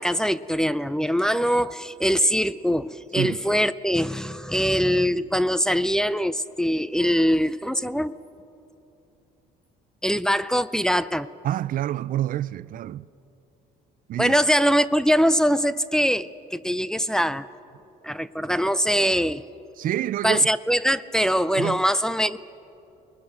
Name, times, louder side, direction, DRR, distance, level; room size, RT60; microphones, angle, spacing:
voice 1, 0.0-8.1 10.0-11.3 14.2-17.5 18.0-19.4 20.2-22.4, equal, 5° left, 0.5 m, -22 dB
voice 2, 11.4-13.1 14.1-14.3 19.8-20.5 21.6-21.8, right 13 dB, 55° right, 0.4 m, -27 dB
29.0 x 21.0 x 5.9 m
cardioid pair, 110°, 17 cm